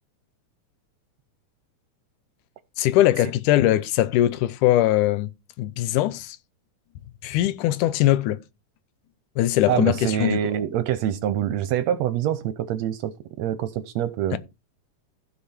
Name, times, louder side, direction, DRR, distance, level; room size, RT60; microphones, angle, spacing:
voice 1, 2.8-5.3 5.6-6.4 7.2-8.4 9.4-10.4 14.3-14.4, left 14 dB, 90° left, 2.2 m, -21 dB
voice 2, 9.7-13.1 13.4-14.4, right 10 dB, 75° right, 1.7 m, -25 dB
15.0 x 5.2 x 4.3 m
omnidirectional pair, 3.6 m